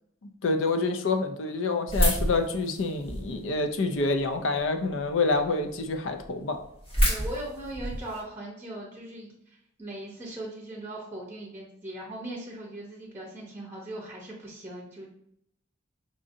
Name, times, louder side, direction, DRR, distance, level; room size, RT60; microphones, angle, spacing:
voice 1, 0.2-6.6, left 3 dB, 75° left, 6 dB, 0.5 m, -27 dB
sound 1, 1.9-3.4 4.0-4.6 5.1-5.2 5.4-5.5 5.9-6.0 6.2-8.2, equal, 30° left, 1.0 m, -27 dB
voice 2, 7.0-15.1, right 1 dB, 10° right, -3 dB, 0.7 m, -39 dB
4.9 x 2.7 x 2.6 m, 0.75 s
head